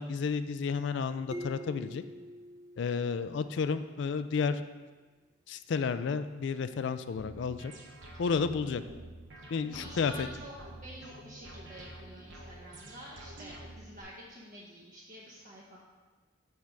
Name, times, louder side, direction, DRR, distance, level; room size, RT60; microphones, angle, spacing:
voice 1, 0.0-2.0 2.8-4.6 5.5-7.7 8.2-8.8 9.5-10.3, left 5 dB, 65° left, 12 dB, 0.3 m, -31 dB
sound 1, 1.3-3.9, equal, 15° right, 0.6 m, -45 dB
sound 2, 7.2-14.0, right 1 dB, 70° right, 1.2 m, -48 dB
voice 2, 9.6-10.5 10.8-15.8, right 1 dB, 40° right, -6 dB, 0.9 m, -48 dB
7.4 x 3.4 x 5.9 m, 1.3 s
head